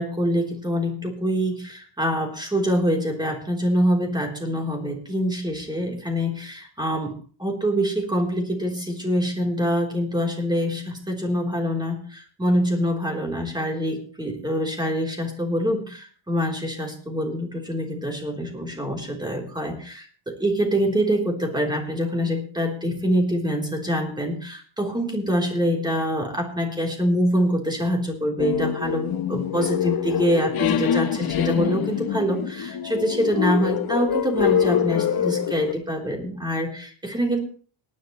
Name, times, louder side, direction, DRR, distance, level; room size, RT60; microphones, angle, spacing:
voice 1, 0.0-7.1 7.4-37.4, equal, 10° right, 2 dB, 3.6 m, -25 dB
sound 1, 28.4-35.7, left 9 dB, 45° left, 1.0 m, -25 dB
18.5 x 11.0 x 3.1 m, 0.41 s
cardioid pair, 130°, 49 cm